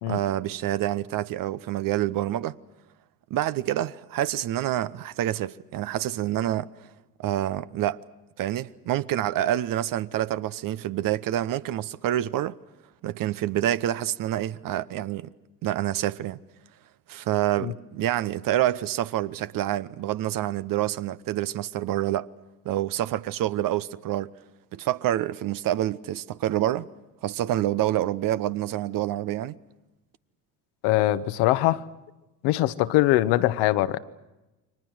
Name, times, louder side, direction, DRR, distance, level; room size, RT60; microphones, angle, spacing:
voice 1, 0.1-2.5 3.3-6.7 7.2-8.0 8.4-12.6 13.0-15.3 15.6-16.4 17.1-22.3 22.6-24.3 24.7-26.9 27.2-29.6, right 13 dB, 45° right, 1.0 m, -27 dB
voice 2, 30.8-31.8 32.4-34.0, left 16 dB, 60° left, 1.3 m, -22 dB
30.0 x 24.5 x 6.3 m
hypercardioid pair, 70°, 47 cm